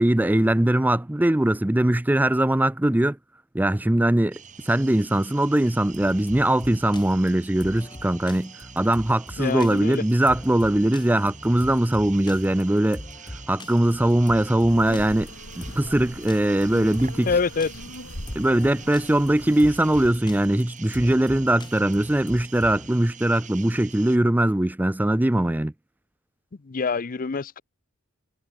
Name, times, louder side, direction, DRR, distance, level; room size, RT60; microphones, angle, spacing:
voice 1, 0.0-3.2 3.5-4.4 4.6-13.0 13.5-15.3 15.6-17.3 18.4-25.7, right 1 dB, 10° right, 0.5 m, -21 dB
sound 1, 4.3-24.2, right 7 dB, 40° right, 1.8 m, -46 dB
sound 2, 5.9-22.9, left 1 dB, 25° left, 2.2 m, -42 dB
voice 2, 9.4-10.0 17.3-17.7 26.6-27.6, left 4 dB, 45° left, 0.6 m, -25 dB
sound 3, 14.7-20.1, left 1 dB, 80° left, 7.9 m, -41 dB
head